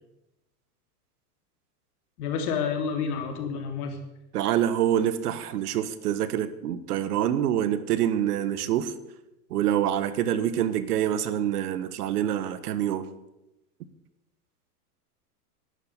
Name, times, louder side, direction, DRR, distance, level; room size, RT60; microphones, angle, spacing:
voice 1, 2.2-4.0, left 6 dB, 65° left, 4 dB, 3.6 m, -29 dB
voice 2, 4.3-8.9 9.5-13.1, right 10 dB, 75° right, 14 dB, 1.5 m, -26 dB
11.5 x 11.5 x 8.4 m, 0.92 s
hypercardioid pair, 110°, 47 cm